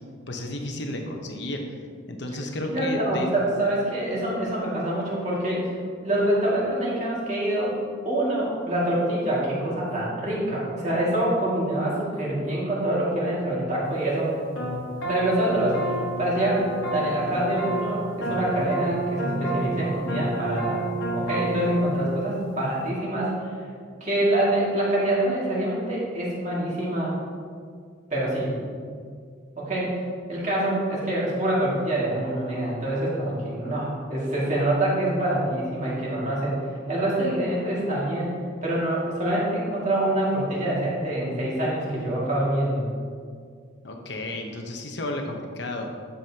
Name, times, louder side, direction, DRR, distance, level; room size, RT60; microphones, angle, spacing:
voice 1, 0.3-1.6 2.1-3.3 43.8-45.9, left 1 dB, 60° left, 3 dB, 1.0 m, -32 dB
voice 2, 2.7-5.8 6.0-7.7 8.0-14.3 15.1-20.8 21.1-23.3 24.0-27.2 28.1-28.5 29.6-30.0 30.3-36.6 36.9-38.3 38.6-42.9, right 1 dB, 35° right, -6 dB, 2.3 m, -25 dB
sound 1, 14.6-21.9, right 2 dB, 80° left, 1.5 m, -29 dB
11.0 x 7.0 x 2.9 m, 2.1 s
head